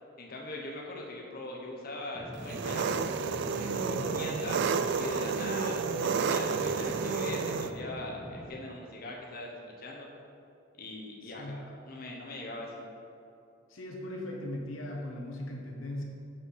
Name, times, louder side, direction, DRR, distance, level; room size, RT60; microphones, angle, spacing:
voice 1, 0.2-3.1 3.5-10.1 10.8-12.9, left 2 dB, 50° left, -2 dB, 1.1 m, -41 dB
sound 1, 2.1-8.5, equal, 5° left, 0.7 m, -43 dB
Engine, 2.4-7.7, right 5 dB, 60° right, 0.3 m, -31 dB
voice 2, 11.2-11.7 13.7-16.0, left 1 dB, 75° left, 0 dB, 1.1 m, -39 dB
5.8 x 5.7 x 6.5 m, 2.6 s
head